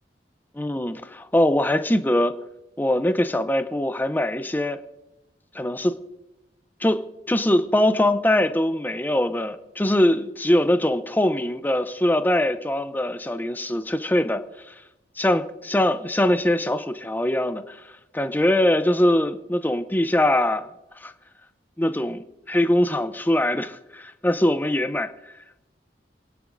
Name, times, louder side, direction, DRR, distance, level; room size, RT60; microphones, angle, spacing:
voice 1, 0.5-2.3 2.8-4.8 5.5-6.0 6.8-14.7 15.2-17.8 18.1-20.7 21.0-21.1 21.8-25.1, left 1 dB, 10° left, 0.5 m, -22 dB
28.5 x 10.5 x 2.6 m
head